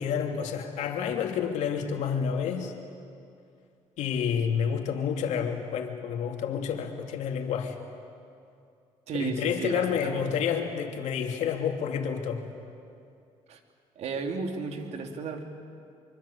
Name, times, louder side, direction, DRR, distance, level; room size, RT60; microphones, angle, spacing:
voice 1, 0.0-2.7 4.0-7.8 9.1-12.4, left 7 dB, 75° left, 3 dB, 3.0 m, -29 dB
voice 2, 9.1-10.2 13.5-13.6 13.9-15.4, right 4 dB, 65° right, 4 dB, 3.0 m, -33 dB
24.5 x 24.5 x 8.6 m, 2.5 s
cardioid pair, 90°, 12 cm